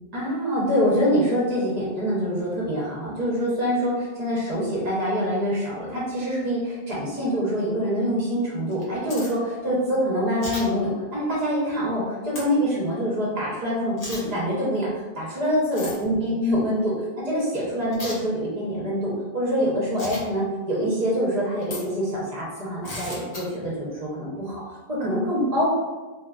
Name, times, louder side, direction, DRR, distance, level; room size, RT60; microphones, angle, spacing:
voice 1, 0.1-25.7, equal, 40° right, -6 dB, 0.8 m, -25 dB
sound 1, 8.7-9.3 10.4-10.6 12.3-12.4 14.0-14.2 15.7-16.0 17.9-18.2 20.0-20.2 21.6-21.8 22.8-23.4, left 1 dB, 40° left, 0.7 m, -35 dB
2.8 x 2.3 x 2.3 m, 1.2 s
omnidirectional pair, 1.1 m